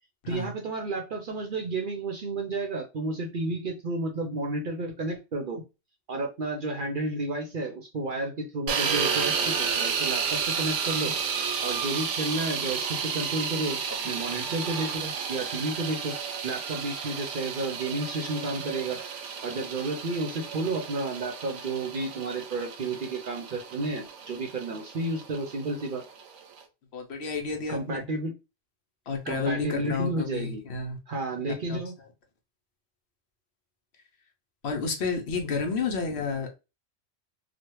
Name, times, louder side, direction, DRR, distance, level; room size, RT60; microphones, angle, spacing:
voice 1, 0.3-5.6 6.1-11.1 11.6-16.2 16.4-19.0 19.4-26.0 27.7-28.3 29.3-30.6 31.1-31.9, right 2 dB, 55° right, 0.7 m, -31 dB
sound 1, 8.7-26.6, right 6 dB, 85° right, 0.9 m, -32 dB
voice 2, 26.9-28.0 29.1-31.0 31.7-31.8 34.6-36.5, left 4 dB, 65° left, 1.0 m, -30 dB
3.1 x 2.2 x 3.0 m
omnidirectional pair, 1.2 m